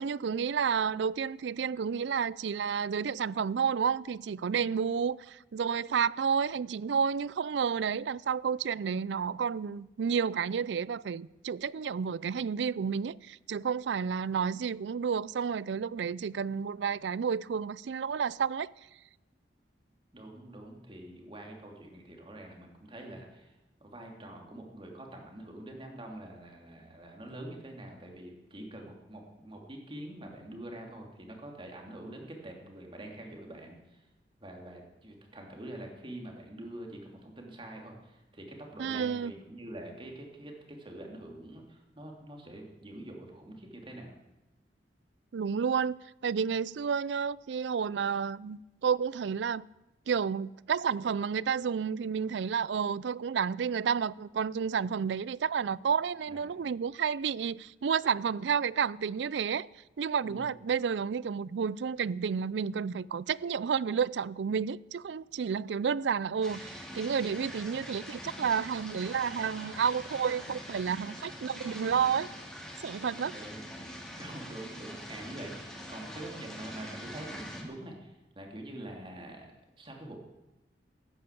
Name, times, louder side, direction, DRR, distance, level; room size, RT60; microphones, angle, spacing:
voice 1, 0.0-18.7 38.8-39.3 45.3-49.6 50.1-59.7 60.0-72.3 72.8-73.3, right 6 dB, 75° right, 0.4 m, -31 dB
voice 2, 20.1-34.1 34.4-44.2 56.3-56.6 60.2-60.5 73.0-73.7 74.2-80.2, right 1 dB, 30° right, 3.0 m, -45 dB
sound 1, 66.4-77.6, equal, 5° left, 3.2 m, -44 dB
14.0 x 10.5 x 8.4 m
head